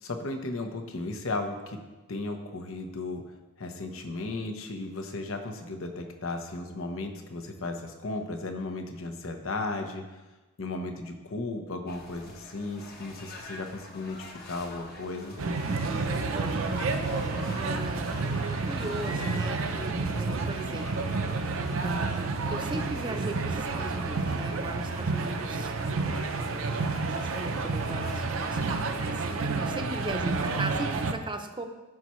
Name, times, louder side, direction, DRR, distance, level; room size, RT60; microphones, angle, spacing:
voice 1, 0.0-1.8 2.1-3.2 3.6-10.1 10.6-15.4, left 2 dB, 70° left, 5 dB, 1.0 m, -35 dB
sound 1, 11.9-29.4, left 1 dB, 45° left, 1.2 m, -46 dB
sound 2, 15.4-31.1, right 3 dB, 65° right, 0.6 m, -30 dB
voice 2, 16.3-16.7 17.6-18.2 18.6-21.1 21.8-25.7 26.3-26.7 27.0-31.6, right 2 dB, 20° right, 5 dB, 0.7 m, -38 dB
14.0 x 5.7 x 3.1 m, 1.2 s
head